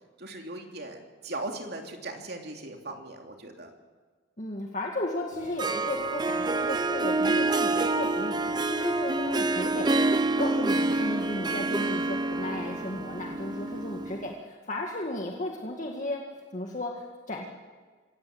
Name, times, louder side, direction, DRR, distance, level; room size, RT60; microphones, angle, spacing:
voice 1, 0.2-3.7, right 2 dB, 55° right, 3 dB, 3.0 m, -38 dB
voice 2, 4.4-16.2 16.5-17.5, left 1 dB, 40° left, 0 dB, 2.0 m, -35 dB
Harp, 5.3-14.3, right 2 dB, 20° right, 0.7 m, -27 dB
25.5 x 17.0 x 7.9 m, 1.5 s
head